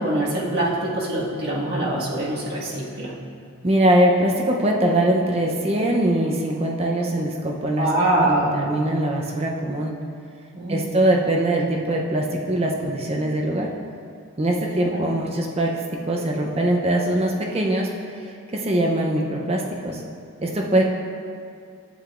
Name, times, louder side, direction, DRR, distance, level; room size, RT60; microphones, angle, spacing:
voice 1, 0.0-3.1 7.8-8.7 10.5-11.0 14.5-14.6 14.9-15.1, right 1 dB, 45° right, -7 dB, 1.7 m, -24 dB
voice 2, 3.6-7.9 8.2-10.0 10.7-13.7 14.4-20.0 20.4-20.8, right 1 dB, 25° right, 0 dB, 0.6 m, -22 dB
11.0 x 7.8 x 2.5 m, 2.3 s
head